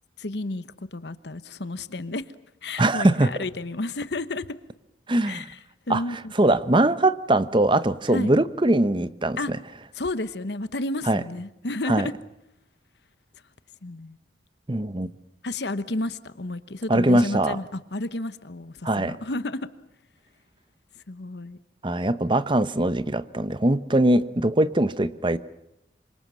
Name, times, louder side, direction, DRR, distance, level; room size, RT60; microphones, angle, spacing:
voice 1, 0.2-2.2 2.6-4.5 5.2-5.6 5.9-6.3 8.1-8.3 9.4-9.5 9.9-12.1 13.8-14.2 15.4-19.7 21.0-21.6, left 2 dB, 65° left, 14 dB, 1.1 m, -31 dB
voice 2, 2.8-3.4 5.1-5.5 5.9-6.0 6.3-9.6 11.1-11.2 11.9-12.1 14.7-15.1 16.9-17.6 18.8-19.2 21.8-25.4, right 1 dB, 25° right, 14 dB, 0.9 m, -21 dB
27.0 x 25.0 x 7.6 m, 0.87 s
head